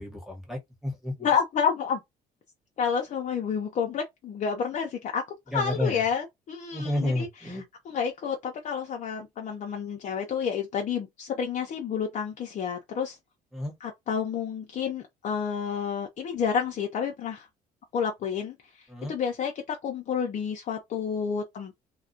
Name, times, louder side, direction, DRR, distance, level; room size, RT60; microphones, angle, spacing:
voice 1, 0.0-1.3 5.5-6.0 6.7-7.7 13.5-13.7 18.9-19.1, left 1 dB, ahead, 1.1 m, -31 dB
voice 2, 1.2-2.0 2.8-5.2 5.5-7.3 7.9-13.2 13.8-17.5 17.9-18.6 19.1-21.8, left 7 dB, 45° left, 0.6 m, -29 dB
2.3 x 2.1 x 2.5 m
cardioid pair, 110°, 17 cm